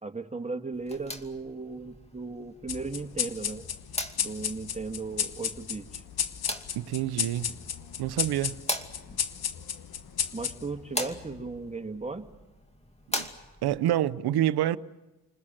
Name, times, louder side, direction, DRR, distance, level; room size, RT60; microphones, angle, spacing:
voice 1, 0.0-3.7 4.2-6.0 10.3-12.3, right 3 dB, 20° right, 2.0 m, -36 dB
sound 1, 0.7-13.8, left 1 dB, 15° left, 2.5 m, -41 dB
sound 2, 2.7-11.6, left 9 dB, 75° left, 1.3 m, -34 dB
voice 2, 6.8-7.5 8.0-8.6 13.1-13.3 13.6-14.8, right 12 dB, 85° right, 0.8 m, -27 dB
30.0 x 20.5 x 7.5 m
supercardioid pair, 55°, 38 cm